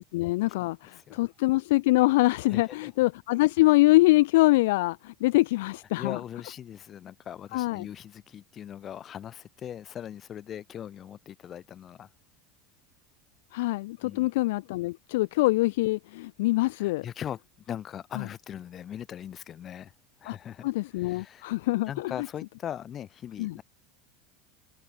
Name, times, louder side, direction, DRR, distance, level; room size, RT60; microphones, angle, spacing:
voice 1, 0.0-6.2 7.5-7.9 13.5-17.0 18.2-18.3 20.3-20.4 20.6-22.1 23.4-23.5, left 20 dB, 70° left, 0.9 m, -24 dB
voice 2, 0.6-1.2 2.5-2.9 6.0-12.1 14.0-14.3 16.8-19.9 20.2-21.5 21.9-23.6, left 10 dB, 40° left, 6.6 m, -40 dB
hypercardioid pair, 80°, 0 cm